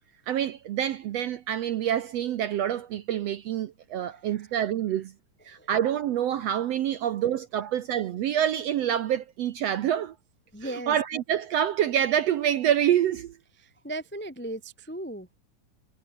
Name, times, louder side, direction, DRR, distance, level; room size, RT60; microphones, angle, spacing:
voice 1, 0.3-5.1 5.5-10.2 10.6-13.4, right 10 dB, 70° right, 1.6 m, -27 dB
voice 2, 4.0-4.4 5.5-5.7 10.5-10.9 13.8-15.3, right 1 dB, 10° left, 0.5 m, -37 dB
omnidirectional pair, 3.8 m